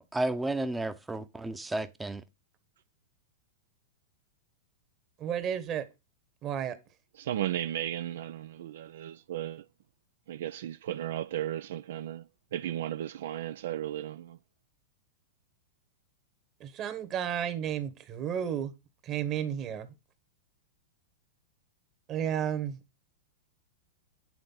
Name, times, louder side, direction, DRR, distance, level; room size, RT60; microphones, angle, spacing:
voice 1, 0.1-2.2, right 2 dB, 10° right, 0.7 m, -32 dB
voice 2, 5.2-5.9 6.4-6.8 16.6-18.7 19.0-19.9 22.1-22.8, right 9 dB, 35° right, 1.3 m, -32 dB
voice 3, 7.2-9.6 10.3-12.3 12.5-14.4, right 12 dB, 70° right, 0.3 m, -35 dB
8.9 x 3.6 x 5.6 m
hypercardioid pair, 110°, 0 cm